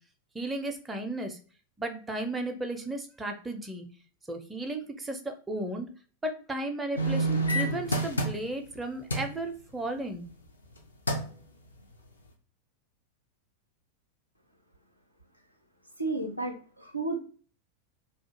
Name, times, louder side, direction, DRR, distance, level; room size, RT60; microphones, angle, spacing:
voice 1, 0.3-1.4 1.8-3.8 4.3-5.9 6.2-10.3, right 2 dB, 10° right, 4 dB, 0.4 m, -34 dB
sound 1, 7.0-8.7 9.1-9.4 10.6-10.8 11.1-11.4 11.9-12.0, right 1 dB, 75° left, 0.4 m, -28 dB
voice 2, 16.0-17.2, right 2 dB, 90° right, 3 dB, 0.4 m, -32 dB
2.3 x 2.2 x 2.7 m, 0.40 s
figure-of-eight pair, 90°, 0 cm